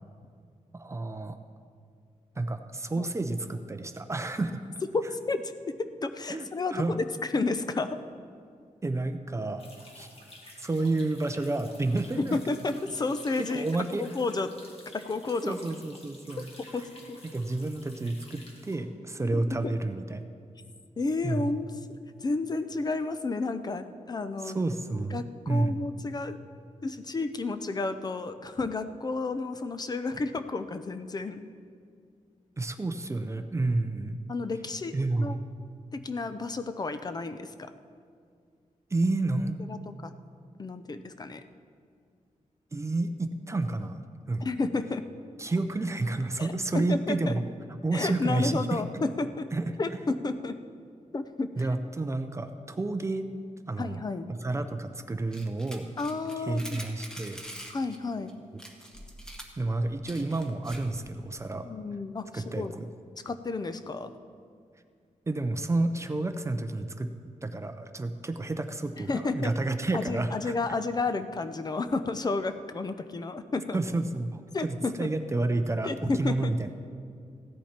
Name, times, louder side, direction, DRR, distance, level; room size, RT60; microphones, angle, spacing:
voice 1, 0.7-1.4 2.4-4.5 6.3-6.9 8.8-9.6 9.9-10.1 10.6-12.4 13.4-14.1 15.4-16.5 17.2-20.3 21.2-21.5 24.4-25.8 32.6-34.2 34.9-35.4 38.9-39.6 42.7-44.4 45.4-47.4 47.8-48.8 49.5-49.7 51.6-53.3 53.7-54.0 54.3-55.9 56.4-57.4 59.6-61.7 62.3-62.9 65.3-67.1 67.4-70.5 73.7-76.7, right 2 dB, 20° right, 8 dB, 0.5 m, -30 dB
voice 2, 4.9-7.1 7.3-8.0 12.2-13.7 13.9-14.5 14.9-15.6 16.7-17.2 19.3-19.7 21.0-21.7 22.2-24.6 25.1-25.2 25.5-26.4 26.8-31.4 34.3-35.4 35.9-37.7 39.7-40.1 40.6-41.4 44.4-45.1 46.4-46.5 46.7-47.3 47.9-49.5 49.8-50.6 51.1-51.5 53.8-54.3 56.0-56.8 57.7-58.3 61.6-62.8 63.3-64.1 69.1-69.5 69.9-73.8 74.5-75.1 75.8-76.5, left 3 dB, 30° left, 10 dB, 0.5 m, -31 dB
sound 1, 9.6-18.8, left 2 dB, 50° left, 2.0 m, -51 dB
sound 2, 55.3-58.0 58.3-58.4 58.6-61.0, equal, 5° left, 1.1 m, -44 dB
15.5 x 10.5 x 4.4 m, 2.3 s
wide cardioid pair, 170°, 13 cm